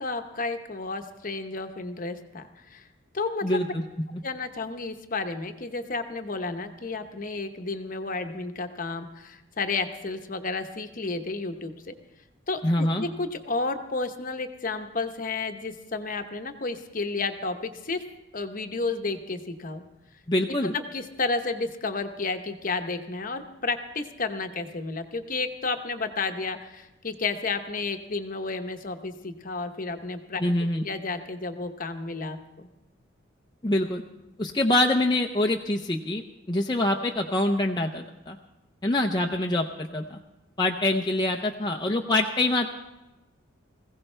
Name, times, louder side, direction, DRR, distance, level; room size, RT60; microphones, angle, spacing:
voice 1, 0.0-2.8 3.1-3.6 4.2-11.9 12.5-18.0 18.3-19.8 20.6-30.4 30.8-32.7, left 3 dB, 40° left, 7 dB, 1.0 m, -32 dB
voice 2, 3.4-3.8 4.1-4.2 12.6-13.0 20.3-20.7 30.4-30.8 33.6-34.0 34.4-36.2 36.5-38.4 38.8-40.2 40.6-42.7, left 1 dB, 20° left, 1 dB, 0.6 m, -25 dB
20.5 x 16.0 x 3.3 m, 1.0 s
head